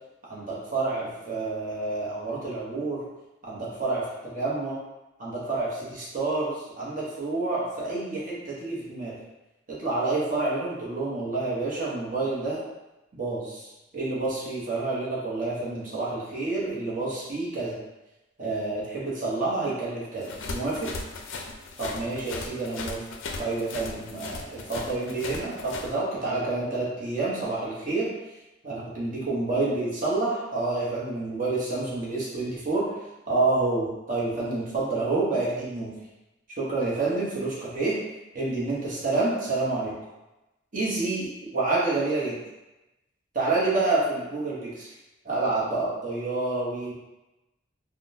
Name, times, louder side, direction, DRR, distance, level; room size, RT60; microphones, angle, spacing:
voice 1, 0.3-3.0 3.4-4.8 5.2-9.2 9.7-12.6 13.1-13.7 13.9-17.8 18.4-20.9 21.8-23.0 23.4-28.1 28.6-32.9 33.3-35.9 36.6-38.0 38.3-39.9 40.7-42.4 43.3-44.9 45.2-46.9, right 3 dB, 40° right, -7 dB, 0.9 m, -28 dB
sound 1, 20.2-25.9, left 3 dB, 75° left, 0.4 m, -37 dB
3.5 x 2.2 x 2.6 m, 1.0 s
head